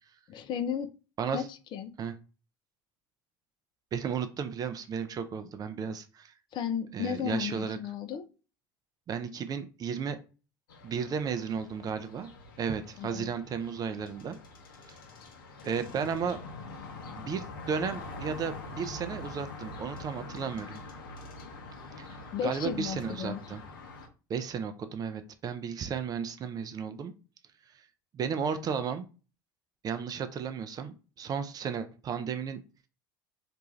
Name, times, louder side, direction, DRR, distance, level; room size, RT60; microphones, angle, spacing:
voice 1, 0.3-0.9 1.3-1.9 6.5-8.3 13.0-13.3 22.3-23.4, left 8 dB, 45° left, 11 dB, 0.4 m, -34 dB
voice 2, 3.9-6.3 6.9-7.8 9.1-10.2 10.8-12.3 12.6-14.4 14.9-15.0 15.6-16.4 17.2-20.8 22.0-23.6 24.3-27.1 28.1-29.1 29.8-32.6, right 6 dB, 35° right, 9 dB, 0.4 m, -34 dB
sound 1, 10.7-24.1, left 2 dB, 80° left, 0.6 m, -44 dB
2.5 x 2.2 x 3.0 m, 0.33 s
hypercardioid pair, 75°, 11 cm